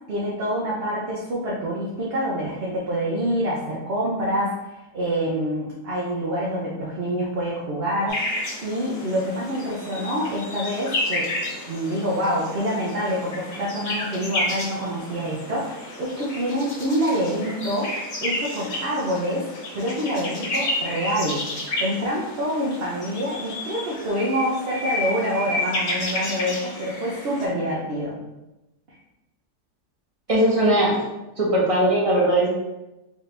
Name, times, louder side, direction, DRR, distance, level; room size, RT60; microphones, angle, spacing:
voice 1, 0.1-11.3 11.7-17.9 18.2-19.5 19.7-21.4 21.8-28.1, equal, 50° right, -5 dB, 0.8 m, -26 dB
sound 1, 8.1-27.4, left 1 dB, 80° left, 2.0 m, -31 dB
voice 2, 30.3-31.0 31.4-32.5, right 1 dB, 20° right, -6 dB, 1.2 m, -19 dB
4.8 x 2.8 x 3.3 m, 0.97 s
omnidirectional pair, 1.8 m